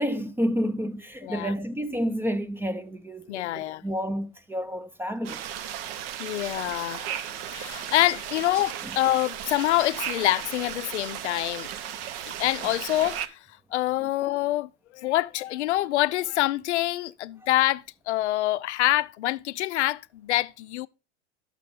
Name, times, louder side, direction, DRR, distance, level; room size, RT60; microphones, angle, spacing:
voice 1, 0.0-5.4 8.8-9.0 14.0-14.1, equal, 5° right, 0.4 m, -30 dB
voice 2, 1.2-1.5 3.3-3.8 6.2-11.7 12.4-20.9, left 15 dB, 75° left, 0.5 m, -26 dB
sound 1, 5.2-13.3, right 10 dB, 55° right, 0.8 m, -35 dB
6.6 x 6.4 x 5.2 m
hypercardioid pair, 105°, 34 cm